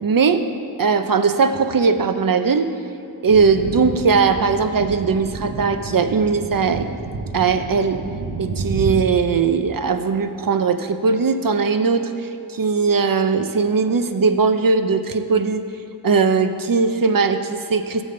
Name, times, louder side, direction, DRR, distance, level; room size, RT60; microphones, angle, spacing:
voice 1, 0.0-0.4 0.8-2.7 3.2-6.9 7.3-8.0 8.4-12.1 12.5-15.6 16.0-18.0, right 5 dB, 60° right, 9 dB, 0.7 m, -19 dB
sound 1, 3.3-9.0, right 4 dB, 90° right, 0.9 m, -29 dB
16.5 x 7.2 x 3.8 m, 2.7 s
wide cardioid pair, 100°, 39 cm